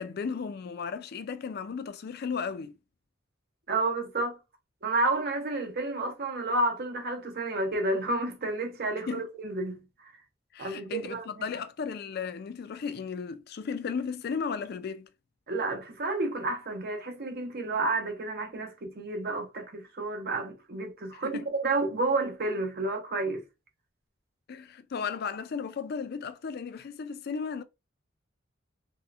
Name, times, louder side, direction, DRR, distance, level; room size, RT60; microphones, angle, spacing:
voice 1, 0.0-2.8 9.1-9.3 10.5-15.1 21.2-21.4 24.5-27.6, left 6 dB, 55° left, 0.4 m, -35 dB
voice 2, 3.7-4.4 4.8-10.1 10.6-11.3 15.5-23.4, right 2 dB, 55° right, 0.8 m, -30 dB
3.1 x 2.8 x 2.4 m
head